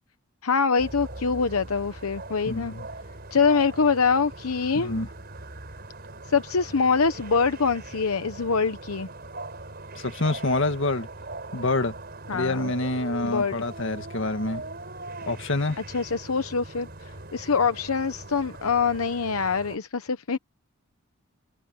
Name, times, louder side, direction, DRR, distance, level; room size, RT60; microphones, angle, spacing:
voice 1, 0.4-2.7 3.3-5.0 6.3-9.1 12.3-12.7 13.2-13.5 15.9-16.9 17.3-20.4, left 5 dB, 85° left, 0.9 m, -24 dB
sound 1, 0.8-19.8, right 2 dB, 45° right, 5.2 m, -40 dB
voice 2, 2.5-2.9 4.7-5.1 10.0-11.1 11.5-11.9 12.3-14.6 15.3-15.8, left 2 dB, 60° left, 1.8 m, -27 dB
head